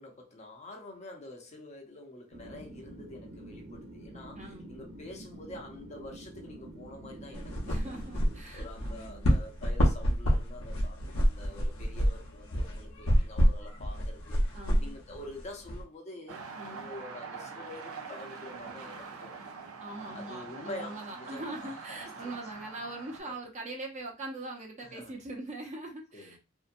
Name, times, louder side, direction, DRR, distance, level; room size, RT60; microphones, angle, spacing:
voice 1, 0.0-8.1 8.5-14.4 14.8-16.4 16.7-19.7 20.1-22.3 23.2-23.4 24.8-25.1 26.1-26.4, left 1 dB, 30° left, 0.6 m, -47 dB
sound 1, 2.3-8.4, right 1 dB, 60° right, 0.9 m, -47 dB
voice 2, 4.4-4.8 7.7-9.4 14.5-15.0 16.5-16.9 19.8-26.4, right 2 dB, 35° right, 0.6 m, -42 dB
sound 2, 7.3-15.8, equal, 70° left, 0.7 m, -28 dB
sound 3, 16.3-23.2, right 5 dB, 80° right, 0.5 m, -44 dB
2.8 x 2.1 x 2.5 m
head